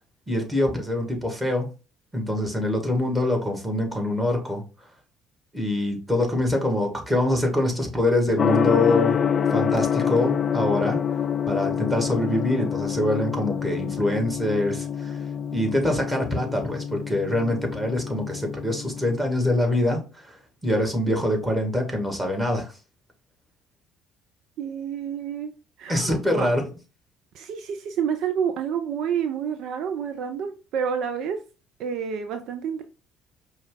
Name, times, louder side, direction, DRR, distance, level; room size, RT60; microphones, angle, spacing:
voice 1, 0.3-1.7 2.1-4.6 5.5-9.2 9.5-11.0 11.5-15.3 15.5-22.8 25.9-26.7, left 1 dB, 10° right, 1.7 m, -24 dB
Gong, 8.4-19.2, left 8 dB, 40° left, 0.4 m, -26 dB
voice 2, 24.6-25.5 25.8-26.5 27.3-31.4 31.8-32.8, right 7 dB, 60° right, 0.4 m, -29 dB
5.0 x 2.4 x 3.9 m
figure-of-eight pair, 55°, 0 cm